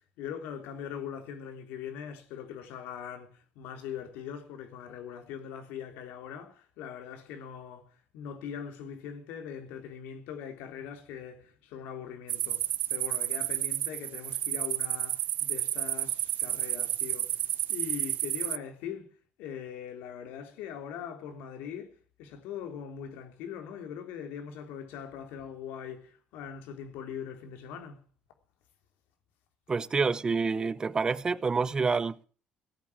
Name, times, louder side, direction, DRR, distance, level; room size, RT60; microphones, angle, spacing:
voice 1, 0.2-7.8 8.1-17.3 17.7-19.1 19.4-21.9 22.2-28.0, left 8 dB, 85° left, 3.7 m, -41 dB
sound 1, 12.3-18.6, right 13 dB, 70° right, 0.9 m, -31 dB
voice 2, 29.7-32.2, right 4 dB, 25° right, 0.8 m, -28 dB
17.5 x 8.6 x 8.6 m
cardioid pair, 115°, 3 cm